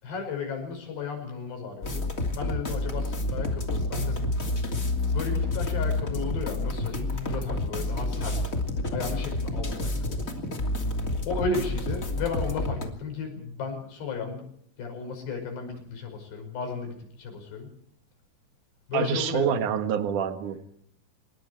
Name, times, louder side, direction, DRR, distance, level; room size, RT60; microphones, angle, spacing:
voice 1, 0.0-2.1 2.3-4.3 5.1-8.5 8.9-10.2 11.3-14.4 14.8-17.7 18.9-19.5, left 4 dB, 55° left, 4 dB, 7.3 m, -34 dB
sound 1, 1.8-12.8, left 2 dB, 25° left, 1.9 m, -29 dB
voice 2, 18.9-20.6, right 7 dB, 60° right, 8 dB, 2.2 m, -26 dB
26.5 x 22.5 x 4.6 m, 0.68 s
omnidirectional pair, 5.9 m